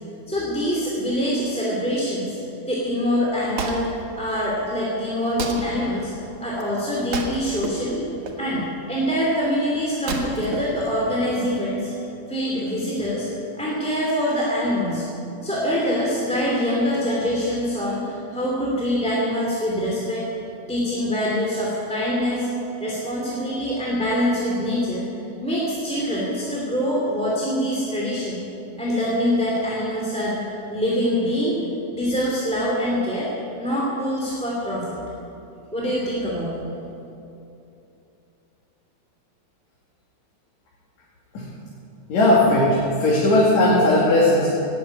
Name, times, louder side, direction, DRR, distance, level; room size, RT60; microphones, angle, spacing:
voice 1, 0.3-2.4 2.7-3.9 4.2-6.1 6.4-8.1 8.4-13.3 13.6-15.1 15.4-20.3 20.7-22.5 22.8-25.0 25.4-28.4 28.8-30.4 30.7-31.6 31.9-33.3 33.6-35.0 35.7-36.6, equal, ahead, -6 dB, 2.3 m, -24 dB
Wood, 3.2-11.5, right 4 dB, 85° right, 3.0 m, -34 dB
voice 2, 42.1-44.5, left 1 dB, 70° left, -6 dB, 3.6 m, -17 dB
16.0 x 9.1 x 9.6 m, 2.8 s
omnidirectional pair, 3.3 m